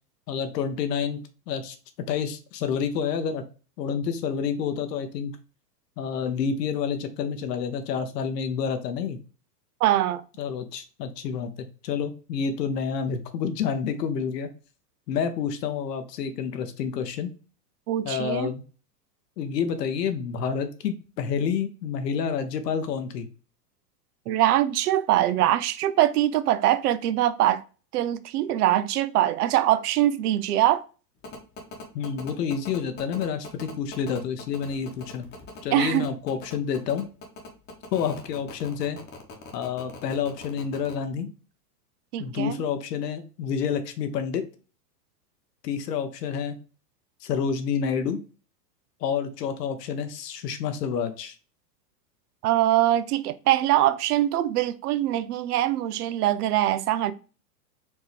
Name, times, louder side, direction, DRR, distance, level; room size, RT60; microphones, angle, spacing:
voice 1, 0.3-1.8 2.1-3.4 3.8-5.4 6.0-9.2 10.4-11.5 11.8-14.5 15.1-17.3 18.0-18.6 19.4-23.3 31.9-35.3 35.6-37.1 37.9-39.0 39.5-41.3 42.2-44.4 45.6-46.6 47.2-48.2 49.0-51.3, left 7 dB, 75° left, 0.8 m, -29 dB
voice 2, 9.8-10.2 17.9-18.5 24.3-27.6 27.9-30.8 35.7-36.1 42.1-42.5 52.4-57.1, right 13 dB, 70° right, 0.6 m, -23 dB
sound 1, 31.2-40.9, left 3 dB, 20° left, 1.0 m, -41 dB
4.5 x 2.7 x 3.1 m
hypercardioid pair, 130°, 48 cm